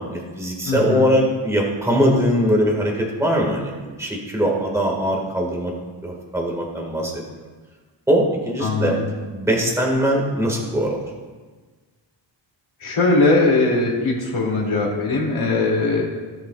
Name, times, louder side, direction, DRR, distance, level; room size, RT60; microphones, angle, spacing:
voice 1, 0.1-5.7 6.0-7.2 8.1-9.0 9.3-11.0, equal, 5° right, -1 dB, 1.8 m, -21 dB
voice 2, 0.6-1.1 8.6-9.1 12.8-16.1, left 3 dB, 75° left, -2 dB, 2.8 m, -20 dB
18.0 x 7.2 x 2.4 m, 1.4 s
wide cardioid pair, 110°, 48 cm